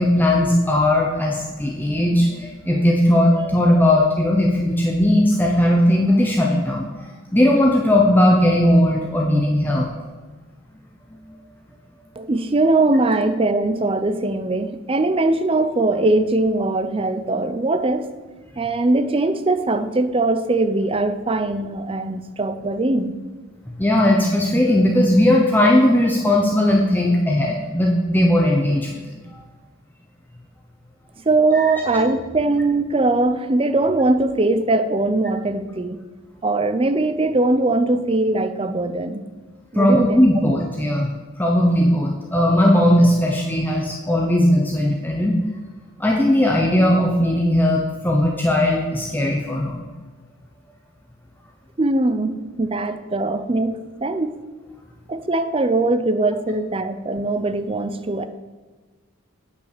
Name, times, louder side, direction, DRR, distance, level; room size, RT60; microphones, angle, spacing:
voice 1, 0.0-9.9 23.8-29.2 31.5-31.8 39.7-41.1 41.4-45.4 46.0-49.8, left 1 dB, 10° left, -1 dB, 0.8 m, -18 dB
voice 2, 12.2-18.1 18.6-23.2 31.3-36.0 36.4-39.2 39.7-40.4 51.8-54.3 55.1-58.3, right 2 dB, 25° right, 11 dB, 0.5 m, -21 dB
8.8 x 5.7 x 6.7 m, 1.3 s
head